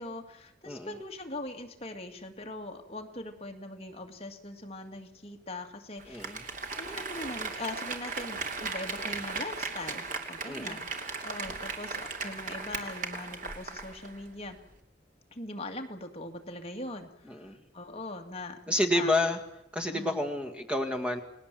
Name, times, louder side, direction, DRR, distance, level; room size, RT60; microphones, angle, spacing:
voice 1, 0.0-10.9 11.2-14.6 15.3-18.6 18.9-19.1 19.9-20.2, left 2 dB, 30° left, 4 dB, 2.3 m, -41 dB
Applause, 6.0-14.2 14.5-14.6, right 4 dB, 45° right, 2.8 m, -37 dB
voice 2, 6.1-6.4 10.5-10.8 17.3-17.6 18.7-19.4 19.7-21.2, left 1 dB, 5° right, 6 dB, 2.0 m, -29 dB
30.0 x 19.5 x 7.7 m, 0.84 s
head